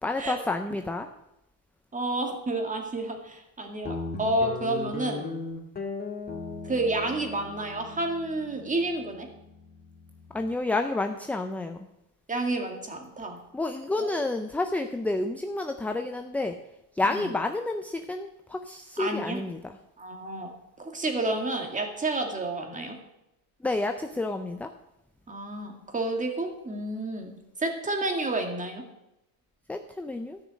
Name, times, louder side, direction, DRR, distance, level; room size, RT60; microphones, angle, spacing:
voice 1, 0.0-1.1 10.3-11.9 13.5-16.6 16.9-19.8 23.6-24.7 29.7-30.4, left 2 dB, 5° left, 6 dB, 0.4 m, -30 dB
voice 2, 1.9-5.3 6.6-9.3 12.3-13.4 14.0-14.2 19.0-19.4 20.0-20.5 20.8-23.0 25.3-27.3 27.6-28.8, right 2 dB, 15° right, 3 dB, 2.2 m, -30 dB
Guitar, 3.8-10.5, left 3 dB, 20° left, 2.3 m, -38 dB
13.5 x 6.1 x 8.3 m, 0.89 s
supercardioid pair, 120°, 47 cm